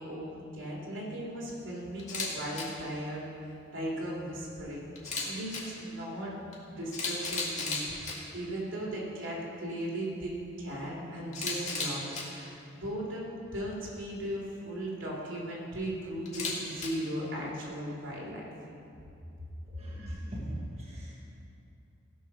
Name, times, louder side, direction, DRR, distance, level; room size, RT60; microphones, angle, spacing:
voice 1, 0.0-3.2 3.7-4.8 5.2-6.4 6.7-12.0 12.3-18.5 19.9-20.2, right 1 dB, 75° right, -5 dB, 3.1 m, -37 dB
Camera, 2.0-2.3 2.5-2.6 5.0-5.6 6.5-6.6 6.9-8.1 11.3-12.2 16.3-16.9, left 4 dB, 35° left, 1.9 m, -34 dB
voice 2, 19.6-21.1, equal, 35° right, -6 dB, 1.5 m, -41 dB
16.0 x 5.5 x 6.1 m, 2.6 s
head